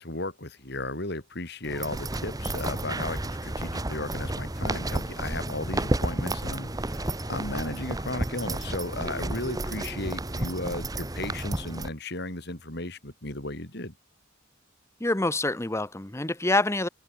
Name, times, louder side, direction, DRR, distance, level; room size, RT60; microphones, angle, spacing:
voice 1, 0.0-13.9, left 2 dB, 60° left, 6.1 m, -35 dB
sound 1, 1.6-11.9, right 1 dB, 20° right, 1.3 m, -32 dB
voice 2, 15.0-16.9, left 2 dB, 15° left, 1.1 m, -26 dB
head